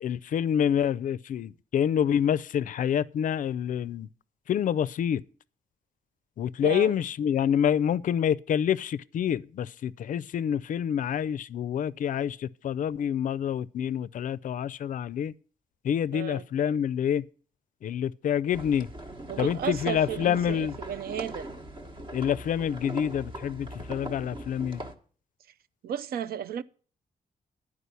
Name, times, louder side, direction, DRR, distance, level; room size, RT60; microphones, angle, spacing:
voice 1, 0.0-4.1 4.5-5.2 6.4-15.3 15.8-17.3 17.8-18.9 19.4-20.8 22.1-24.8, left 9 dB, 60° left, 0.4 m, -27 dB
voice 2, 6.6-7.0 16.1-16.4 19.3-21.5 25.8-26.6, right 9 dB, 85° right, 0.5 m, -34 dB
sound 1, 18.5-24.9, right 1 dB, 35° right, 1.0 m, -40 dB
11.5 x 4.8 x 8.2 m
wide cardioid pair, 150°, 15 cm